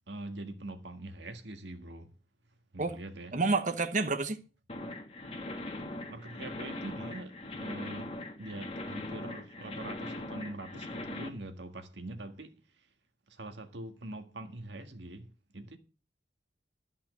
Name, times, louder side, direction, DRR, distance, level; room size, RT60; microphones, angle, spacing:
voice 1, 0.1-2.1 2.7-3.3 6.1-8.1 8.4-12.5 13.4-15.3 15.5-15.8, right 2 dB, 75° right, 1.7 m, -43 dB
voice 2, 3.3-4.4, right 3 dB, 45° right, 1.1 m, -29 dB
sound 1, 4.7-11.3, left 1 dB, 30° left, 1.6 m, -40 dB
13.0 x 5.7 x 7.7 m
head